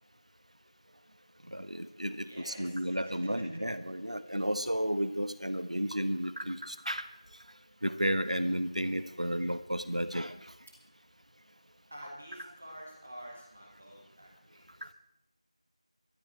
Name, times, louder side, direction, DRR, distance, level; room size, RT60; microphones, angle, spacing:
voice 1, 1.5-7.1 7.8-10.3, equal, 90° right, 10 dB, 1.4 m, -32 dB
voice 2, 2.2-3.3 4.2-4.5 10.7-10.9 11.9-14.9, equal, 15° right, -1 dB, 1.1 m, -49 dB
19.5 x 12.5 x 4.4 m, 0.85 s
figure-of-eight pair, 180°, 4 cm